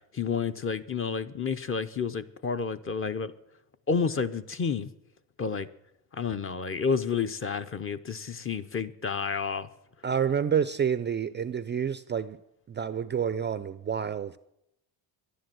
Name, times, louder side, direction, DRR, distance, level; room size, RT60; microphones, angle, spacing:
voice 1, 0.1-3.3 3.9-4.9 5.4-5.7 6.1-9.7, left 5 dB, 30° left, 0.7 m, -30 dB
voice 2, 10.0-12.4 12.7-14.4, right 7 dB, 25° right, 0.4 m, -28 dB
11.5 x 10.0 x 7.7 m
cardioid pair, 105°, 43 cm